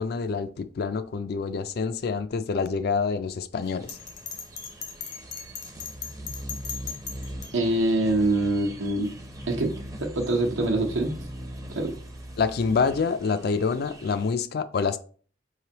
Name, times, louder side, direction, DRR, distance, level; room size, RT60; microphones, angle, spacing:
voice 1, 0.0-4.0 12.4-15.0, left 5 dB, 50° left, 0.3 m, -27 dB
sound 1, 3.6-14.3, equal, 15° right, 0.5 m, -41 dB
Bell, 3.9-7.5, left 7 dB, 70° left, 0.8 m, -37 dB
voice 2, 7.5-9.1 9.5-9.7 10.0-11.3 11.8-12.0, right 2 dB, 85° right, 0.9 m, -24 dB
5.1 x 3.3 x 2.9 m
head